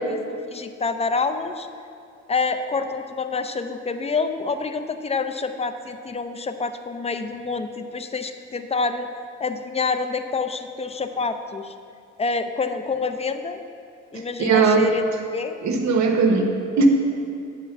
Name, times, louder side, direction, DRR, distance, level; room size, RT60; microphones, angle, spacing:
voice 1, 0.5-1.7 2.3-9.1 9.4-11.7 12.2-13.6 14.1-15.1 15.3-15.6, left 4 dB, 20° left, 8 dB, 0.5 m, -27 dB
voice 2, 14.1-14.9 15.6-16.9, right 4 dB, 65° right, 4 dB, 1.0 m, -19 dB
8.3 x 4.4 x 7.0 m, 2.4 s
cardioid pair, 90°, 30 cm